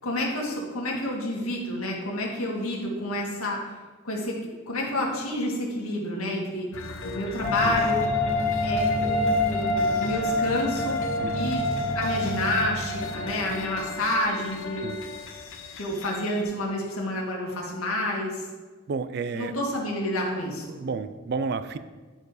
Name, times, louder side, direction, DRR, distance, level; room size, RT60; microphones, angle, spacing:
voice 1, 0.0-3.7 4.0-8.1 8.6-11.0 11.3-11.6 11.9-14.9 15.7-18.5 19.3-20.8, left 1 dB, 90° left, -1 dB, 1.9 m, -29 dB
sound 1, 6.7-16.4, left 4 dB, 65° left, 0.9 m, -38 dB
sound 2, 7.4-13.9, left 2 dB, 30° left, 1.5 m, -26 dB
voice 2, 18.9-19.5 20.8-21.8, right 4 dB, 50° right, 12 dB, 0.4 m, -31 dB
10.5 x 4.5 x 4.8 m, 1.3 s
head